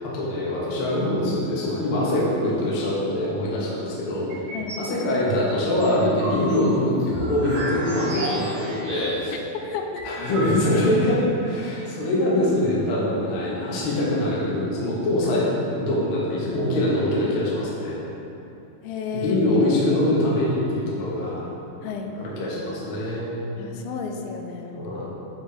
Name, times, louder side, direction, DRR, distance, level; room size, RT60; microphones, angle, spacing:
voice 1, 0.0-4.4 4.8-9.3 10.0-18.0 19.1-21.4 22.1-23.6 24.7-25.0, left 1 dB, 65° left, -6 dB, 1.3 m, -23 dB
sound 1, 4.3-4.9 5.3-9.4 9.7-9.8 10.0-10.9, right 1 dB, 85° right, 1.1 m, -32 dB
voice 2, 9.5-10.1 18.8-19.7 21.8-22.1 23.6-24.8, left 5 dB, 85° left, 3 dB, 2.3 m, -32 dB
7.3 x 3.4 x 5.0 m, 2.9 s
omnidirectional pair, 4.2 m